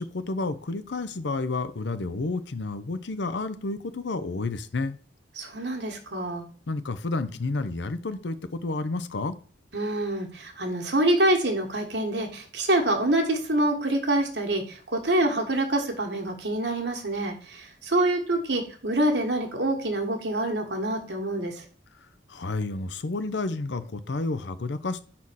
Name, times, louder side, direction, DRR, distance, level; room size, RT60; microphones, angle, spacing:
voice 1, 0.0-5.0 6.7-9.4 22.3-25.0, left 3 dB, 75° left, 12 dB, 0.7 m, -30 dB
voice 2, 5.4-6.5 9.7-21.6, right 1 dB, 70° right, 2 dB, 1.6 m, -26 dB
5.5 x 4.3 x 6.2 m, 0.43 s
head